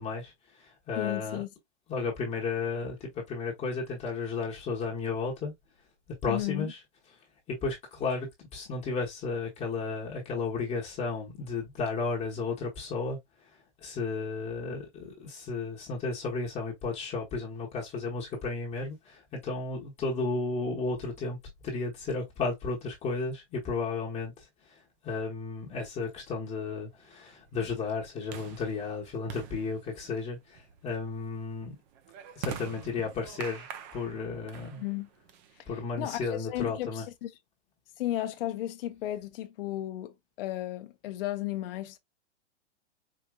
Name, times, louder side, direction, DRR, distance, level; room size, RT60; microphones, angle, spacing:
voice 1, 0.0-1.4 1.9-5.5 6.2-6.8 7.5-13.2 13.8-21.4 21.6-31.8 32.4-33.7 33.9-34.8 35.7-37.0, left 4 dB, 20° left, 1.1 m, -33 dB
voice 2, 1.0-1.5 6.3-6.7 34.8-35.1 36.0-37.3 38.0-42.0, left 14 dB, 50° left, 0.8 m, -34 dB
sound 1, 25.6-36.0, right 8 dB, 40° right, 0.7 m, -46 dB
4.9 x 2.7 x 2.2 m
hypercardioid pair, 140°, 36 cm